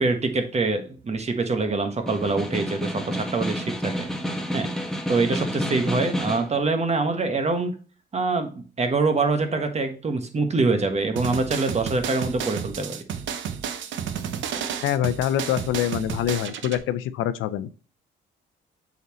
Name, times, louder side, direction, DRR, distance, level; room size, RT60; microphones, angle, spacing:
voice 1, 0.0-4.1 4.5-4.7 5.1-7.7 8.1-13.0, right 3 dB, 35° right, 7 dB, 1.3 m, -24 dB
Snare drum, 2.1-6.6, equal, ahead, 1.4 m, -29 dB
sound 1, 11.2-16.8, right 8 dB, 75° right, 0.8 m, -32 dB
voice 2, 14.8-17.7, left 11 dB, 90° left, 13 dB, 0.6 m, -25 dB
8.0 x 4.1 x 3.0 m, 0.37 s
cardioid pair, 90°, 20 cm